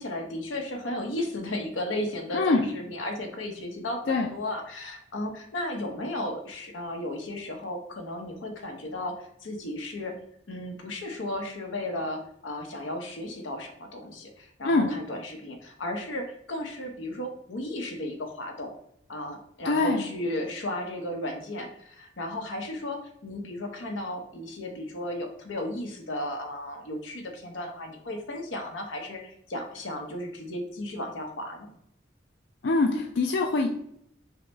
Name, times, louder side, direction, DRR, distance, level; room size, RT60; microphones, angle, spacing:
voice 1, 0.0-10.2 10.5-18.7 19.1-31.7, left 1 dB, 90° left, 3 dB, 0.8 m, -34 dB
voice 2, 19.6-20.0 32.6-33.7, left 3 dB, 60° left, 2 dB, 0.4 m, -23 dB
5.6 x 2.1 x 3.3 m, 0.73 s
head